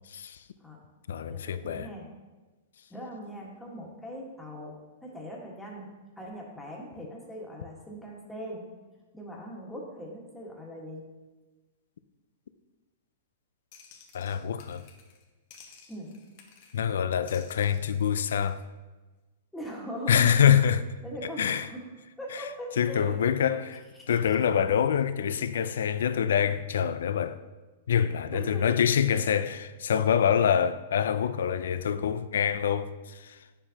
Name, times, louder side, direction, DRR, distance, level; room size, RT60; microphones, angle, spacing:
voice 1, 0.1-0.4 1.1-1.9 14.1-14.9 16.7-18.6 20.1-20.9 21.4-21.7 22.3-22.5 22.8-27.4 27.9-33.4, left 8 dB, 80° left, 0.4 m, -25 dB
voice 2, 1.3-2.1 2.9-5.9 6.2-8.6 9.1-11.1 15.9-16.2 19.5-20.3 21.0-21.8 22.2-23.2 23.4-23.6 25.3-25.4 28.3-28.7, equal, 5° left, 1.5 m, -40 dB
sound 1, 13.7-15.2 15.5-16.9 17.3-18.6, left 6 dB, 45° left, 1.2 m, -54 dB
8.7 x 6.8 x 2.8 m
hypercardioid pair, 145°, 0 cm